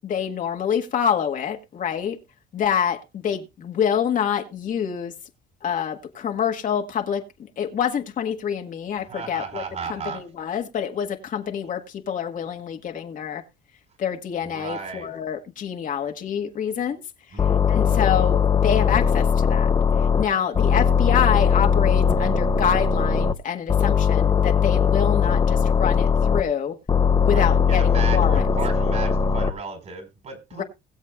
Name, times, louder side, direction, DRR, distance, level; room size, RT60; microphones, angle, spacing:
voice 1, 0.0-2.2 2.5-5.1 5.6-9.6 9.9-13.4 14.0-17.0 17.3-19.7 20.2-26.8 27.2-28.5 30.6-30.7, left 8 dB, 50° left, 1.6 m, -26 dB
voice 2, 9.0-10.2 14.4-15.1 17.3-17.7 20.1-20.4 27.3-30.6, right 5 dB, 45° right, 4.8 m, -35 dB
sound 1, 17.4-20.2 20.5-23.3 23.7-26.4 26.9-29.5, left 6 dB, 25° left, 0.7 m, -19 dB
20.5 x 7.4 x 2.4 m
cardioid pair, 110°, 17 cm